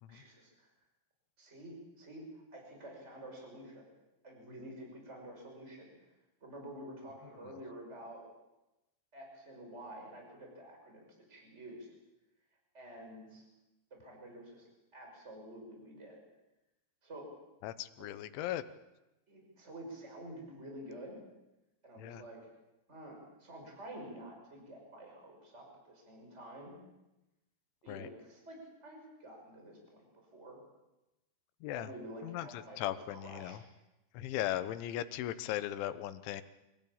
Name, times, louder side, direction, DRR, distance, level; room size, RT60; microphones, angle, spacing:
voice 1, 0.1-0.7 1.4-3.9 4.2-5.9 6.4-8.2 9.1-11.9 12.7-13.5 13.9-14.7 14.9-16.2 17.0-17.3 18.0-18.1 19.3-21.2 21.8-22.5 22.9-26.8 27.8-30.6 31.7-32.8 33.1-33.6, right 1 dB, 15° right, 1 dB, 6.0 m, -49 dB
voice 2, 17.6-18.6 22.0-22.2 27.9-28.1 31.6-31.9 32.2-33.6 34.1-36.4, left 13 dB, 85° left, 12 dB, 3.4 m, -38 dB
25.0 x 16.0 x 8.7 m, 0.99 s
omnidirectional pair, 5.3 m